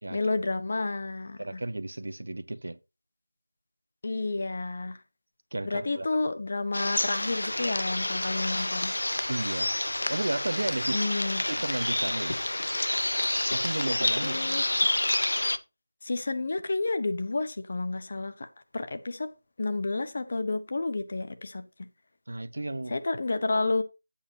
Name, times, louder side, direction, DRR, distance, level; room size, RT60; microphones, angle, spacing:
voice 1, 0.1-1.6 4.0-5.0 5.6-8.9 10.9-11.4 14.2-14.6 16.0-18.5 18.7-19.3 19.6-21.9 22.9-23.8, left 3 dB, 40° left, 1.2 m, -30 dB
voice 2, 1.4-2.8 5.5-6.1 9.3-9.7 10.1-11.1 11.5-12.4 13.5-14.4 22.3-23.0, right 2 dB, 65° right, 0.8 m, -33 dB
sound 1, 6.7-15.6, left 1 dB, 85° left, 0.7 m, -29 dB
10.5 x 8.6 x 2.9 m
figure-of-eight pair, 175°, 0 cm